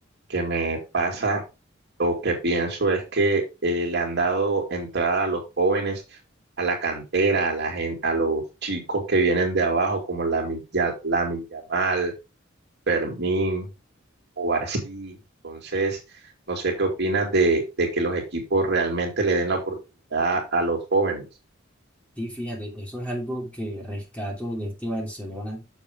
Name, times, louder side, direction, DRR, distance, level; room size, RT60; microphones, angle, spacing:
voice 1, 0.3-1.4 2.0-6.0 6.6-12.1 12.9-13.7 14.4-15.2 15.4-16.0 16.5-19.8 20.1-21.3, right 3 dB, 60° right, 2.6 m, -24 dB
voice 2, 22.2-25.7, equal, 5° left, 2.9 m, -32 dB
7.1 x 6.9 x 3.6 m
head